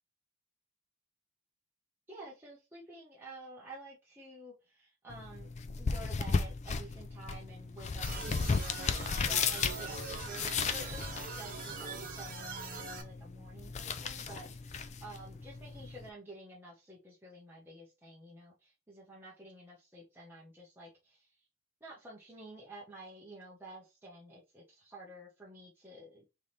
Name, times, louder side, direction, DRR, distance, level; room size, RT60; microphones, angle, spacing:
voice 1, 2.1-21.5 21.8-26.2, right 2 dB, 10° right, -5 dB, 0.9 m, -51 dB
sound 1, 5.1-16.1, left 5 dB, 30° left, 0.4 m, -36 dB
sound 2, 8.0-13.0, right 4 dB, 40° right, 1.2 m, -42 dB
3.5 x 3.2 x 4.2 m, 0.27 s
head